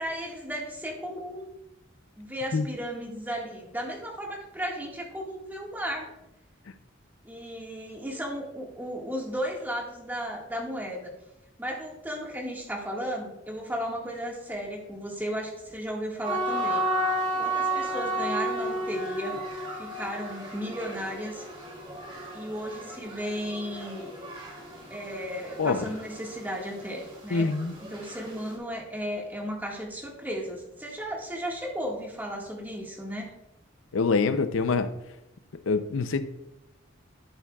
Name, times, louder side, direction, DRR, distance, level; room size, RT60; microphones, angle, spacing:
voice 1, 0.0-1.4 2.2-6.2 7.2-11.1 11.6-16.9 17.4-19.4 19.7-21.4 22.3-24.1 24.9-27.5 27.9-33.3, equal, 10° right, -2 dB, 1.7 m, -35 dB
sound 1, 16.2-28.5, right 1 dB, 30° right, 2.6 m, -33 dB
voice 2, 27.3-27.8 33.9-34.9 35.7-36.2, left 4 dB, 90° left, 11 dB, 0.5 m, -25 dB
12.0 x 7.2 x 2.3 m, 0.85 s
head